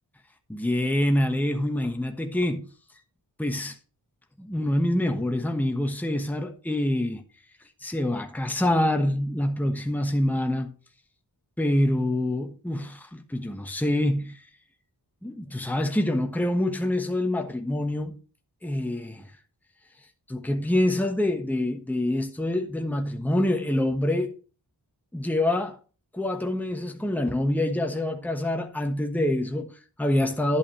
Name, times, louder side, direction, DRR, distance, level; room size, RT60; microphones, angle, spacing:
voice 1, 0.5-2.7 3.4-3.8 4.4-7.2 7.8-10.7 11.6-14.4 15.2-18.1 18.6-19.3 20.3-24.3 25.1-25.8 26.1-30.6, left 1 dB, 5° left, 1.2 m, -26 dB
11.0 x 8.5 x 3.1 m
wide cardioid pair, 70°, 41 cm